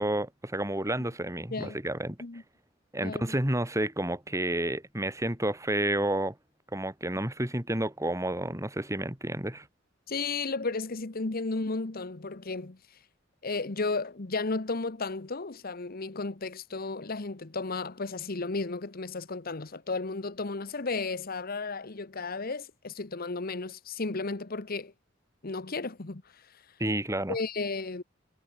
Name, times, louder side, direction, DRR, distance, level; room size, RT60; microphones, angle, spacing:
voice 1, 0.0-2.2 2.9-6.3 6.7-9.7 26.8-27.4, right 1 dB, 15° right, 3.6 m, -30 dB
voice 2, 3.0-3.3 10.1-12.8 13.4-24.9 25.4-26.6 27.3-28.0, left 3 dB, 50° left, 1.1 m, -34 dB
head